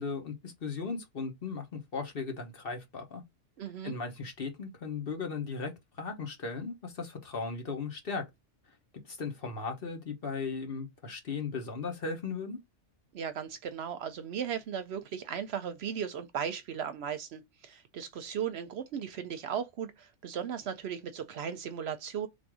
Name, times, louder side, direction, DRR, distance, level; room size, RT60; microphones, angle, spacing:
voice 1, 0.0-3.2 3.8-8.2 9.0-12.6, left 4 dB, 50° left, 1.2 m, -37 dB
voice 2, 3.6-4.0 13.1-22.3, right 8 dB, 65° right, 0.8 m, -36 dB
3.8 x 2.6 x 4.7 m
omnidirectional pair, 1.2 m